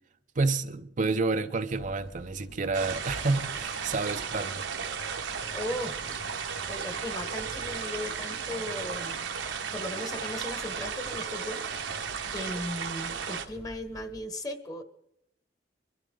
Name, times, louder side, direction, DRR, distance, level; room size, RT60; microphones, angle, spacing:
voice 1, 0.4-4.7, right 3 dB, 45° right, 0.6 m, -29 dB
sound 1, 1.7-14.2, equal, 65° left, 6.0 m, -49 dB
sound 2, 2.7-13.5, right 6 dB, 85° right, 1.3 m, -35 dB
voice 2, 5.5-5.9 6.6-9.2 9.7-11.6 12.3-14.8, left 1 dB, 20° left, 1.2 m, -37 dB
24.0 x 12.5 x 3.8 m
head